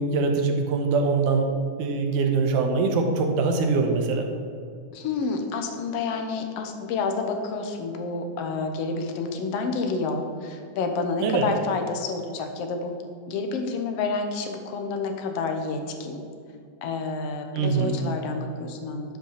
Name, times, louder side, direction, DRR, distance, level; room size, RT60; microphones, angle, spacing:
voice 1, 0.0-1.5 1.8-4.3 11.2-11.4 17.5-18.0, right 4 dB, 80° right, 3 dB, 2.5 m, -23 dB
voice 2, 4.9-12.9 13.3-16.2 16.8-19.2, left 4 dB, 65° left, 5 dB, 1.6 m, -29 dB
10.5 x 5.2 x 6.6 m, 2.3 s
omnidirectional pair, 3.7 m